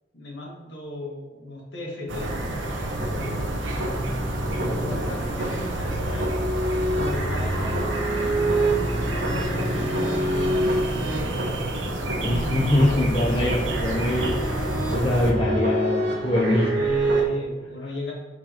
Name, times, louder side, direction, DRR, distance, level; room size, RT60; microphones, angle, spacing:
voice 1, 0.1-2.4 3.0-3.6 4.5-6.3 6.9-11.7 12.5-13.1 16.7-18.1, left 2 dB, 65° left, -2 dB, 1.7 m, -36 dB
sound 1, 2.1-15.3, right 1 dB, 90° right, 1.0 m, -29 dB
sound 2, 2.2-17.2, right 1 dB, 65° right, 1.4 m, -28 dB
voice 2, 4.5-5.1 12.1-16.7, left 1 dB, 25° left, -4 dB, 0.8 m, -24 dB
9.5 x 4.7 x 3.0 m, 1.2 s
head